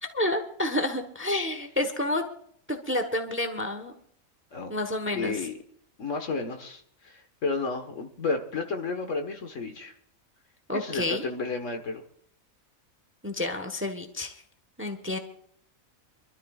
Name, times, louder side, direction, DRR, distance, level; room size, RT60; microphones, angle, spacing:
voice 1, 0.0-2.2 2.7-3.9 4.7-5.5 10.7-11.2 13.2-14.4 14.8-15.2, left 1 dB, 10° right, 6 dB, 1.1 m, -29 dB
voice 2, 5.1-5.6 6.0-9.9 10.7-12.0, left 4 dB, 60° left, 5 dB, 1.8 m, -32 dB
26.5 x 12.5 x 2.4 m, 0.63 s
omnidirectional pair, 1.5 m